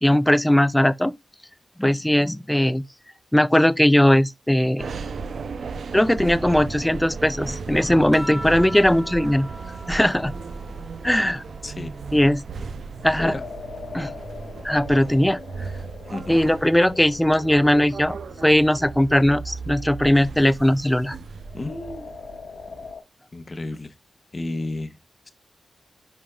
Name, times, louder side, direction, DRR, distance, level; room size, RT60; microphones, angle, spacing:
voice 1, 0.0-1.1 1.8-2.8 3.3-4.9 5.9-9.5 9.9-10.3 11.0-11.4 12.1-12.4 13.0-13.3 13.9-14.1 14.6-15.4 16.3-21.2, left 1 dB, 5° left, 0.4 m, -19 dB
sound 1, 4.8-22.9, right 4 dB, 70° right, 0.6 m, -36 dB
sound 2, 8.1-12.9 13.4-15.1 16.3-16.8, equal, 10° right, 0.9 m, -42 dB
voice 2, 11.6-11.9 13.2-13.4 16.1-16.4 21.5-22.1 23.3-23.9 24.3-25.0, left 2 dB, 30° left, 1.0 m, -31 dB
sound 3, 12.8-19.0 21.4-23.0, left 5 dB, 80° left, 1.4 m, -41 dB
10.0 x 5.1 x 2.3 m
wide cardioid pair, 140°, 0 cm